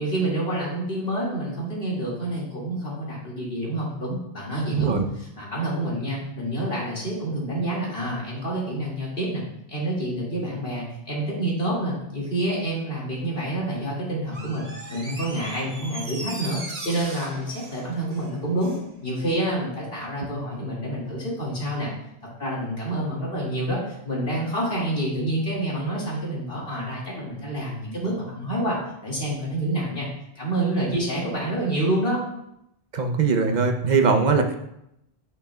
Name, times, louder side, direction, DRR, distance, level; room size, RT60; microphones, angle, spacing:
voice 1, 0.0-9.4 9.7-18.7 19.0-21.9 22.4-28.8 29.0-30.1 30.4-32.2, right 1 dB, 65° left, -5 dB, 2.3 m, -28 dB
voice 2, 4.7-5.1 20.2-20.3 32.9-34.6, right 5 dB, 50° right, 5 dB, 0.7 m, -21 dB
Door, 14.3-18.9 19.2-19.3, right 2 dB, 75° right, 1.5 m, -38 dB
8.8 x 5.6 x 2.2 m, 0.80 s
omnidirectional pair, 1.0 m